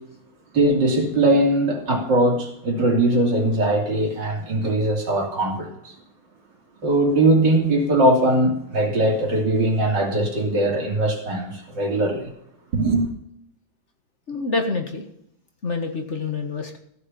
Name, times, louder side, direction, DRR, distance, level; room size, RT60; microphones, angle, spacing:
voice 1, 0.5-5.9 6.8-12.3 12.7-13.1, right 1 dB, 55° right, 3.5 m, -20 dB
voice 2, 14.3-15.0 15.6-16.8, left 3 dB, 35° left, 1.6 m, -27 dB
15.5 x 6.8 x 7.0 m
omnidirectional pair, 2.3 m